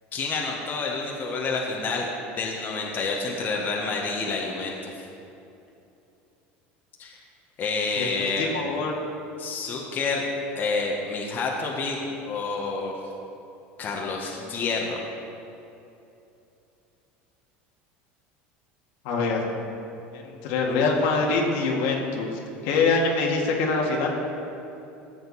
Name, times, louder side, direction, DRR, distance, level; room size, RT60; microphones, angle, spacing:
voice 1, 0.1-5.1 7.0-7.2 7.6-8.5 9.4-10.2 10.5-13.0 13.8-15.0, left 4 dB, 35° left, -1 dB, 1.5 m, -29 dB
voice 2, 8.0-9.0 19.0-19.5 20.1-24.1, left 3 dB, 75° left, -1 dB, 2.0 m, -25 dB
14.5 x 7.8 x 4.2 m, 2.8 s
supercardioid pair, 120°, 5 cm